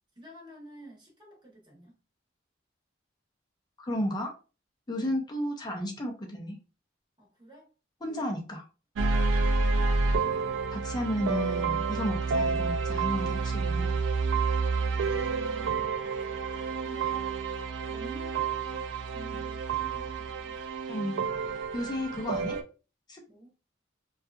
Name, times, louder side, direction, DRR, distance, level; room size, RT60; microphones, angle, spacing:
voice 1, 0.2-2.0 5.0-5.2 7.2-7.7 8.0-8.3 10.0-10.6 14.8-17.3 17.9-20.6 23.3-23.5, right 1 dB, 25° right, 0.9 m, -51 dB
voice 2, 3.8-4.3 4.9-6.6 8.0-8.6 10.7-14.0 20.9-22.6 23.1-23.2, equal, 20° left, 0.5 m, -33 dB
sound 1, 9.0-22.6, right 4 dB, 80° right, 0.3 m, -29 dB
2.7 x 2.3 x 2.3 m
head